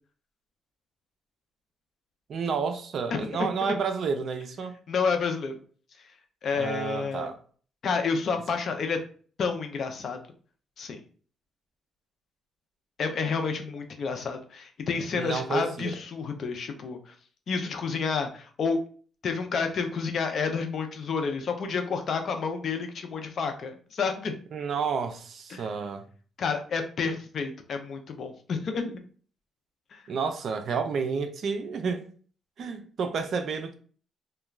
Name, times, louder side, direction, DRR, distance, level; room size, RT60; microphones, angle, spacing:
voice 1, 2.3-4.8 6.5-7.4 15.1-16.0 24.5-26.0 30.1-32.1 32.6-33.7, right 5 dB, 60° right, 0.4 m, -30 dB
voice 2, 3.1-3.8 4.9-5.6 6.4-7.3 7.8-9.0 9.4-10.2 10.8-11.0 13.0-17.1 17.5-18.8 19.2-24.4 25.5-25.6 26.4-29.0 29.9-30.0, left 5 dB, 55° left, 0.5 m, -30 dB
2.3 x 2.2 x 3.1 m
cardioid pair, 90°, 0 cm